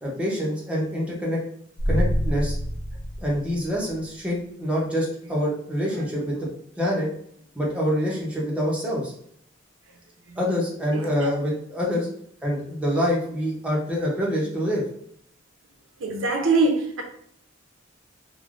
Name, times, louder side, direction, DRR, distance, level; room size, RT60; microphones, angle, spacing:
voice 1, 0.0-1.4 1.9-2.6 3.2-6.5 6.8-7.1 7.6-9.1 10.4-12.1 12.4-14.8, equal, 5° right, 0.6 m, -26 dB
sound 1, 1.8-4.0, equal, 35° left, 0.3 m, -26 dB
voice 2, 10.9-11.3 16.0-17.0, right 3 dB, 85° right, 0.5 m, -23 dB
3.2 x 2.1 x 2.4 m
head